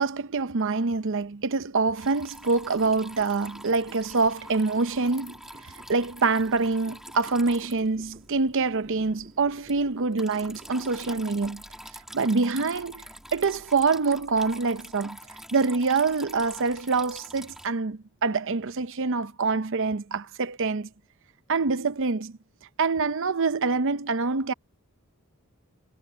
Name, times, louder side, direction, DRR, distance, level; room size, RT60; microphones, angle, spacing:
voice 1, 0.0-5.4 5.6-11.6 12.1-13.0 13.3-15.2 15.5-20.9 21.5-22.3 22.8-24.5, right 4 dB, 60° right, 0.7 m, -25 dB
Water tap faucet / Trickle dribble, 2.0-17.7, equal, ahead, 3.1 m, -46 dB
sound 1, 2.4-11.9, right 1 dB, 35° right, 6.9 m, -52 dB
head